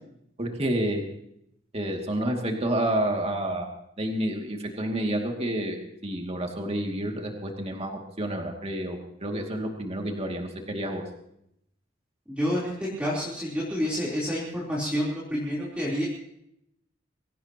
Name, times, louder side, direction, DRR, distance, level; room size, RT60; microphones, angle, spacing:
voice 1, 0.4-1.0 1.7-3.7 4.0-11.0, right 1 dB, 30° right, 2 dB, 2.4 m, -29 dB
voice 2, 12.4-16.1, equal, 5° right, -7 dB, 3.7 m, -28 dB
23.5 x 17.5 x 3.0 m, 0.76 s
head